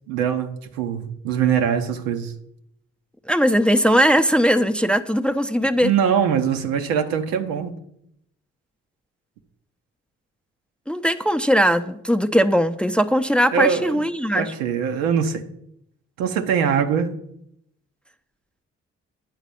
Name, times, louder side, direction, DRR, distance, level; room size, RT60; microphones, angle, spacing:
voice 1, 0.1-2.3 5.8-7.7 13.5-14.0 14.3-15.5 16.2-17.2, right 7 dB, 80° right, 0.7 m, -22 dB
voice 2, 3.3-5.9 10.9-14.5, equal, 5° left, 0.5 m, -19 dB
9.2 x 4.0 x 6.8 m
hypercardioid pair, 40°, 34 cm